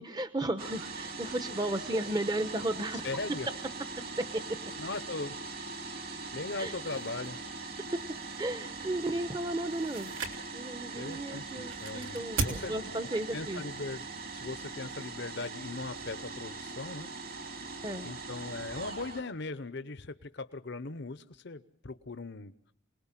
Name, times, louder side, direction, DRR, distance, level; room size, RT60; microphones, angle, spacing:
voice 1, 0.0-3.1 4.2-4.4 6.6-6.7 7.8-8.0 8.4-10.1 10.5-13.6 17.8-18.1, right 1 dB, 20° right, 9 dB, 0.9 m, -34 dB
sound 1, 0.6-19.2, right 3 dB, 50° right, 2.3 m, -41 dB
voice 2, 3.0-3.5 4.8-5.4 6.3-7.4 10.9-13.0 13.3-14.1 14.3-17.1 18.0-22.5, left 3 dB, 60° left, 12 dB, 0.9 m, -39 dB
sound 2, 6.8-15.2, right 3 dB, 75° right, 3.2 m, -42 dB
28.0 x 20.0 x 7.4 m, 0.69 s
head